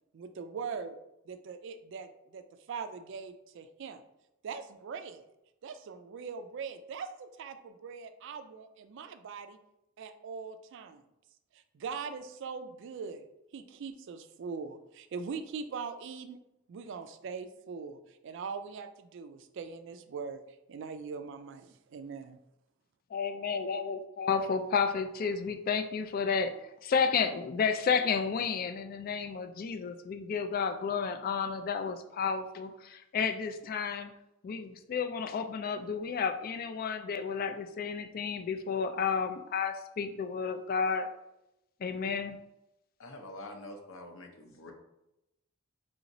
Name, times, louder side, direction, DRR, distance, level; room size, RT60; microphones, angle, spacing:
voice 1, 0.1-1.0 1.3-4.0 4.4-5.2 5.6-9.6 10.0-11.0 11.5-13.3 13.5-16.4 16.7-20.4 20.7-22.4, right 5 dB, 60° right, 9 dB, 0.3 m, -41 dB
voice 2, 23.1-26.5 26.8-34.1 34.4-41.1 41.8-42.4, left 6 dB, 45° left, 8 dB, 0.3 m, -31 dB
voice 3, 43.0-44.7, left 1 dB, 80° left, 3 dB, 0.8 m, -46 dB
4.8 x 2.9 x 2.6 m, 0.88 s
head